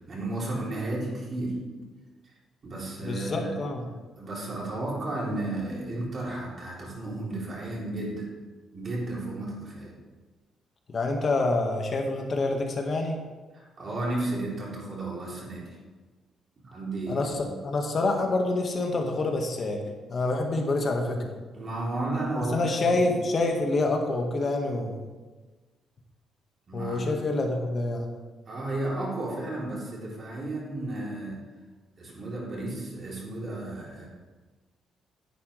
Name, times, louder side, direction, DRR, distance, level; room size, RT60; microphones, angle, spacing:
voice 1, 0.1-1.6 2.6-3.6 4.2-8.3 8.7-9.9 13.5-15.8 16.6-17.5 21.5-23.0 26.7-27.1 28.5-31.4 32.0-34.1, right 2 dB, 45° right, -4 dB, 3.4 m, -33 dB
voice 2, 3.0-3.8 10.9-13.2 17.1-21.3 22.3-25.0 26.7-28.1, left 2 dB, 45° left, 2 dB, 1.7 m, -27 dB
10.0 x 8.9 x 3.4 m, 1.3 s
cardioid pair, 90°, 0 cm